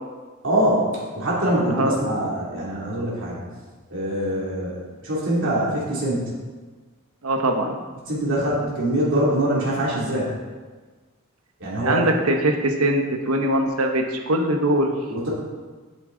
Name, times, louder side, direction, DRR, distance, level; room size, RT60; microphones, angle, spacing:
voice 1, 0.4-0.9 1.1-3.4 3.9-6.3 8.1-10.3 11.6-12.0 15.1-15.3, right 1 dB, 65° right, -6 dB, 2.7 m, -23 dB
voice 2, 7.2-7.8 11.8-14.9, right 1 dB, 85° right, 3 dB, 1.1 m, -22 dB
8.8 x 8.4 x 3.9 m, 1.4 s
head